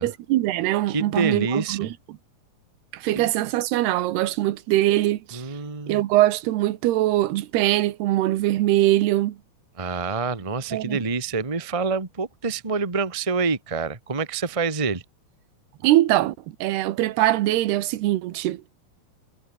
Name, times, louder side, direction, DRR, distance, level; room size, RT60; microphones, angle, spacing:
voice 1, 0.0-2.2 2.9-5.4 5.9-9.4 10.7-11.0 15.8-16.4 16.6-18.6, right 15 dB, 85° right, 3.2 m, -22 dB
voice 2, 0.9-1.9 3.1-3.2 5.3-6.0 9.8-15.0, right 4 dB, 20° right, 0.8 m, -27 dB
omnidirectional pair, 4.5 m